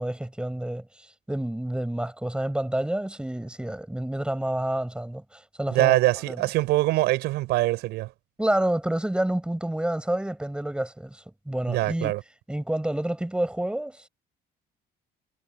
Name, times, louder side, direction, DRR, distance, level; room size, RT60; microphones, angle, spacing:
voice 1, 0.0-6.0 6.3-6.4 8.4-12.1 12.5-14.1, right 1 dB, 5° right, 6.9 m, -29 dB
voice 2, 5.7-8.1 11.7-12.2, right 18 dB, 90° right, 6.2 m, -23 dB
cardioid pair, 110°, 17 cm